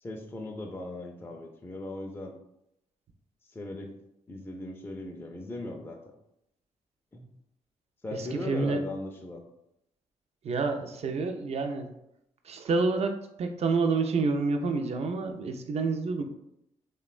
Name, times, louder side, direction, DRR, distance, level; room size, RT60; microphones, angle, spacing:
voice 1, 0.0-2.3 3.5-4.0 4.3-6.0 7.1-7.3 8.0-9.4, left 2 dB, 15° left, 2 dB, 0.4 m, -38 dB
voice 2, 8.1-8.8 10.4-11.9 12.4-13.1 13.4-16.2, right 4 dB, 50° right, 5 dB, 0.4 m, -28 dB
2.9 x 2.2 x 2.4 m, 0.81 s
supercardioid pair, 50°, 14 cm